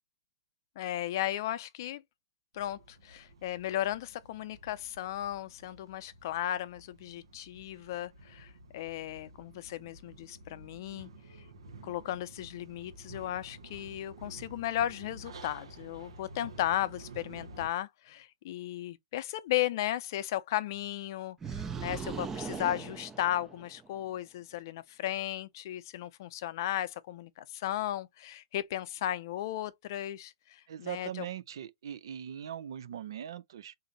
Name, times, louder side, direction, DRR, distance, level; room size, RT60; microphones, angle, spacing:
voice 1, 0.8-2.0 2.5-11.1 11.8-31.3, left 13 dB, 50° left, 0.5 m, -35 dB
sound 1, 2.5-17.7, right 2 dB, 85° right, 1.0 m, -51 dB
sound 2, 21.4-23.9, right 6 dB, 15° right, 0.4 m, -39 dB
voice 2, 30.7-33.7, right 10 dB, 70° right, 0.6 m, -40 dB
3.9 x 2.6 x 3.9 m
hypercardioid pair, 135°, 2 cm